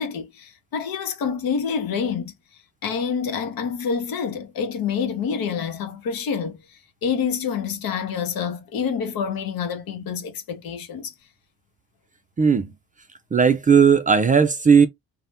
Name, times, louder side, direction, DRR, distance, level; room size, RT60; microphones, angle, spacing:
voice 1, 0.0-2.3 2.8-6.6 7.0-11.1, left 6 dB, 75° left, 0.9 m, -27 dB
voice 2, 12.4-12.7 13.3-14.9, right 6 dB, 25° right, 0.4 m, -16 dB
2.7 x 2.1 x 3.3 m
cardioid pair, 115°, 36 cm